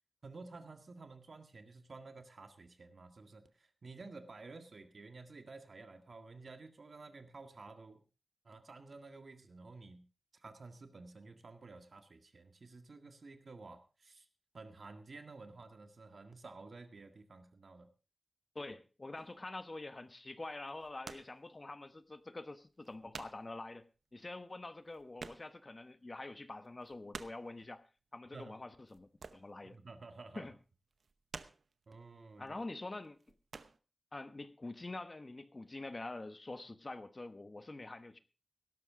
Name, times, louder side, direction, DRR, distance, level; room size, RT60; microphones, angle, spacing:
voice 1, 0.2-8.0 8.4-10.1 10.3-14.3 14.5-17.9 28.3-28.6 29.6-30.5 31.9-32.6, right 3 dB, 60° right, 1.8 m, -52 dB
voice 2, 18.5-23.8 24.1-27.9 28.1-29.8 30.3-30.5 32.4-33.2 34.1-38.2, left 2 dB, 35° left, 1.0 m, -46 dB
sound 1, 19.2-19.5 20.6-21.4 21.8-21.9 22.5-22.6 22.8-23.5 23.8-23.9 24.2-24.3 24.5-25.8 26.1-26.2 26.6-27.5 28.8-29.6 30.0-30.3 30.9-31.8 32.5-32.7 33.0-33.8, right 4 dB, 80° right, 0.8 m, -50 dB
17.0 x 12.5 x 3.7 m
wide cardioid pair, 110°, 0 cm